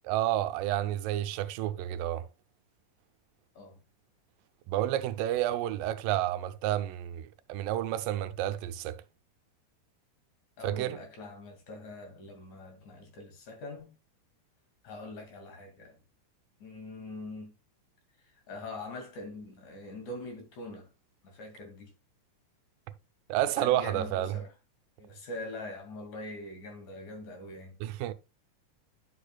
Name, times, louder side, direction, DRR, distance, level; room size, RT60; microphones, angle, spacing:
voice 1, 0.1-2.2 4.7-9.0 10.6-11.0 23.3-24.4 27.8-28.1, right 13 dB, 85° right, 2.3 m, -30 dB
voice 2, 10.6-13.9 14.8-16.0 16.6-17.5 18.2-20.9 21.2-21.9 23.6-24.5 25.0-27.8, left 2 dB, 60° left, 3.5 m, -43 dB
10.5 x 6.7 x 2.2 m
omnidirectional pair, 3.9 m